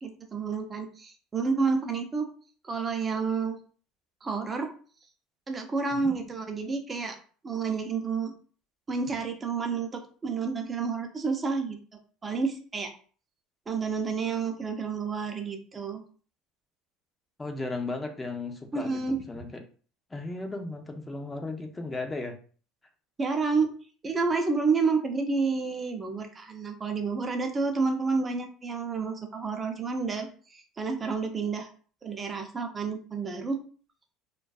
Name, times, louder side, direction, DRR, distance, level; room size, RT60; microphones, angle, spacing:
voice 1, 0.0-2.3 2.6-3.6 4.2-4.7 5.5-7.2 7.4-8.3 8.9-11.8 12.2-12.9 13.7-16.0 18.7-19.2 23.2-23.7 24.0-31.7 32.0-33.6, right 4 dB, 25° right, 4 dB, 0.6 m, -29 dB
voice 2, 17.4-19.6 20.1-22.4, left 2 dB, 15° left, 4 dB, 0.6 m, -35 dB
2.5 x 2.3 x 2.3 m, 0.41 s
supercardioid pair, 90°, 0 cm